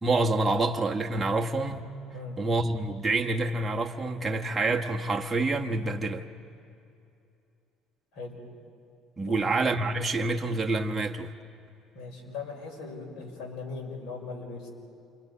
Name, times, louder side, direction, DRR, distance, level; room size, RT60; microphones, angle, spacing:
voice 1, 0.0-1.9 2.4-6.2 9.2-11.3, right 2 dB, 15° right, 0 dB, 1.1 m, -27 dB
voice 2, 11.9-14.7, left 4 dB, 70° left, 0 dB, 5.8 m, -39 dB
28.5 x 25.0 x 5.5 m, 2.6 s
cardioid pair, 135°, 0 cm